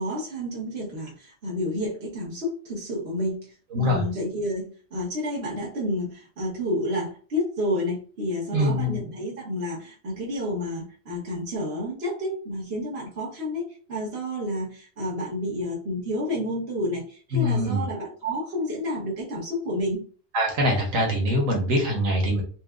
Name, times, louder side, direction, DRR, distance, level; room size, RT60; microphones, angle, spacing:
voice 1, 0.0-3.5 3.7-20.0, left 1 dB, 50° right, -3 dB, 1.5 m, -30 dB
voice 2, 3.7-4.0 8.5-9.0 17.3-17.8 20.3-22.4, left 1 dB, 90° right, 0 dB, 1.5 m, -23 dB
5.9 x 2.4 x 2.4 m, 0.41 s
omnidirectional pair, 1.4 m